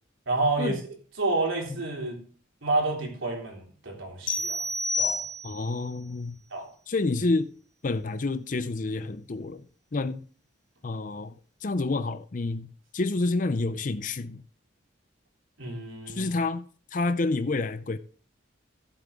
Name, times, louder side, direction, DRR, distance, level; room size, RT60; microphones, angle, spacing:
voice 1, 0.3-0.8 1.2-2.2 2.6-4.6 5.0-5.2 6.5-6.7 15.6-16.3, right 2 dB, 90° right, 3.6 m, -29 dB
sound 1, 4.3-5.8, left 2 dB, 90° left, 2.3 m, -29 dB
voice 2, 5.4-6.4 6.9-7.5 7.8-9.7 9.9-10.3 10.8-11.3 11.6-14.4 16.1-16.6 16.9-18.0, left 3 dB, 40° left, 0.5 m, -29 dB
15.5 x 7.7 x 3.6 m
head